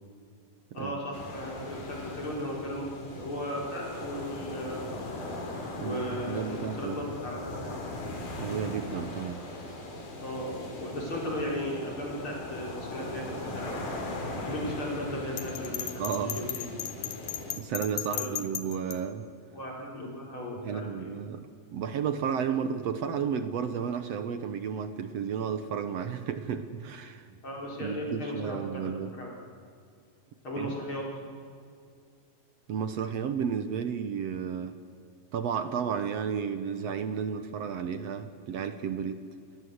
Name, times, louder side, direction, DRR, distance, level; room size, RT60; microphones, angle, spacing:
voice 1, 0.7-5.0 5.8-7.7 10.2-13.9 14.4-16.7 18.1-18.3 19.5-21.2 27.4-29.4 30.4-31.1, equal, 35° left, -2 dB, 5.0 m, -36 dB
sound 1, 1.1-17.6, left 2 dB, 60° left, 5.3 m, -39 dB
voice 2, 5.8-7.0 8.4-9.4 16.0-16.5 17.6-19.3 20.6-27.4 27.8-29.2 30.6-30.8 32.7-34.8 35.3-39.2, right 7 dB, 65° right, 10 dB, 1.6 m, -32 dB
Bell, 15.4-19.0, left 11 dB, 75° left, 3.0 m, -35 dB
29.5 x 22.0 x 8.0 m, 2.3 s
omnidirectional pair, 4.1 m